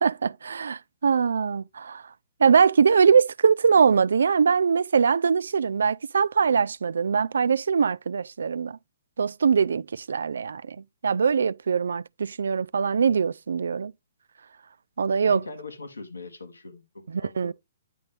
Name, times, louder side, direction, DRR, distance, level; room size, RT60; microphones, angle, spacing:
voice 1, 0.0-2.0 2.4-8.8 9.2-10.8 11.0-13.9 15.0-15.4 17.1-17.5, right 6 dB, 75° right, 0.3 m, -22 dB
voice 2, 15.2-17.5, left 3 dB, 90° left, 1.6 m, -41 dB
9.2 x 5.3 x 3.2 m
hypercardioid pair, 130°, 0 cm